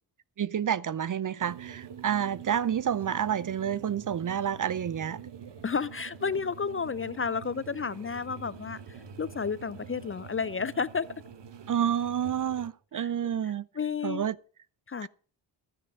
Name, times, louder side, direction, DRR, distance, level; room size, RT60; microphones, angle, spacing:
voice 1, 0.4-5.2 11.7-13.7 14.0-14.4 15.0-15.1, right 9 dB, 40° right, 0.6 m, -29 dB
sound 1, 1.4-12.7, right 7 dB, 55° right, 1.5 m, -46 dB
voice 2, 5.6-11.1 13.0-13.1 13.8-14.3 14.9-15.1, left 5 dB, 25° left, 0.5 m, -31 dB
12.0 x 9.7 x 5.4 m
supercardioid pair, 55°, 50 cm